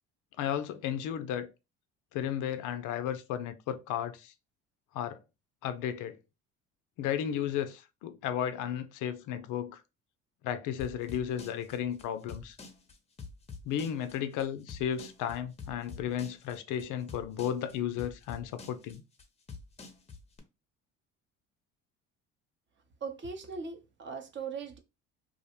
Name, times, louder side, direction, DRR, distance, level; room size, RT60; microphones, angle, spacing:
voice 1, 0.4-1.5 2.1-4.3 4.9-5.2 5.6-6.2 7.0-9.8 10.4-12.6 13.6-19.0, left 9 dB, 60° left, 0.4 m, -34 dB
sound 1, 10.8-20.4, left 5 dB, 20° left, 0.6 m, -46 dB
voice 2, 23.0-24.8, right 5 dB, 35° right, 0.6 m, -39 dB
2.5 x 2.0 x 2.8 m
supercardioid pair, 75°, 34 cm